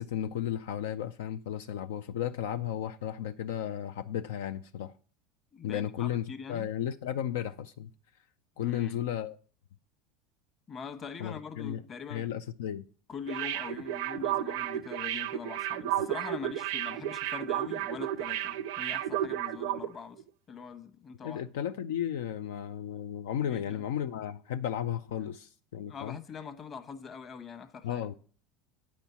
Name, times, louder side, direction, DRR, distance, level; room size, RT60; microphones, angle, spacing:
voice 1, 0.0-4.9 5.6-7.9 8.6-9.4 11.2-11.8 12.1-12.8 21.2-26.2 27.8-28.1, left 10 dB, 80° left, 0.4 m, -34 dB
voice 2, 5.5-6.7 8.6-9.0 10.7-12.3 13.1-20.2 20.5-21.4 23.4-23.8 25.9-28.0, left 6 dB, 35° left, 1.1 m, -43 dB
sound 1, 13.3-19.9 20.2-20.3, right 12 dB, 75° right, 0.5 m, -32 dB
9.2 x 4.4 x 6.9 m
hypercardioid pair, 100°, 0 cm